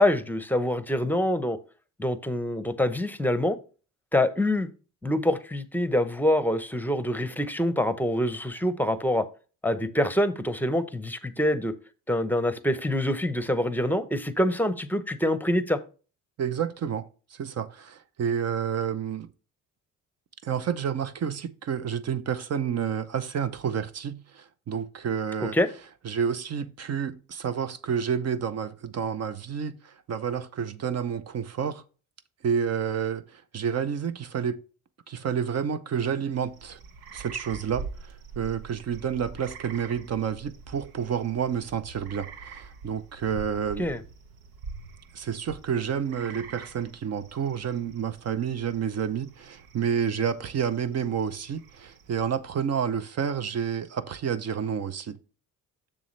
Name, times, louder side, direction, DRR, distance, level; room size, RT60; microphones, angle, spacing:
voice 1, 0.0-1.6 2.0-3.6 4.1-4.7 5.0-9.2 9.6-11.7 12.1-15.8 25.4-25.7 43.8-44.0, left 1 dB, 5° left, 0.7 m, -25 dB
voice 2, 16.4-19.3 20.4-25.6 26.0-31.8 32.4-34.6 35.1-36.8 37.1-43.9 45.1-55.2, right 7 dB, 45° right, 0.6 m, -29 dB
sound 1, 36.3-52.5, right 5 dB, 85° right, 1.0 m, -45 dB
7.0 x 6.7 x 3.2 m
cardioid pair, 90°, 35 cm